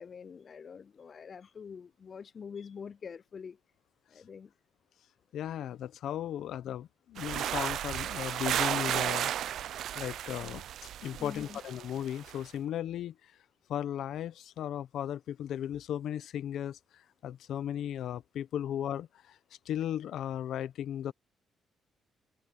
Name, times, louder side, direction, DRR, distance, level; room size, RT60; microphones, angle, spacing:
voice 1, 0.0-3.6 4.1-4.5 8.8-8.9 11.2-11.6, left 6 dB, 45° left, 0.3 m, -45 dB
voice 2, 5.3-10.6 11.0-13.3 13.7-19.4 19.6-21.1, left 10 dB, 75° left, 0.9 m, -36 dB
sound 1, 7.2-12.4, right 11 dB, 75° right, 0.4 m, -34 dB
cardioid pair, 90°, 0 cm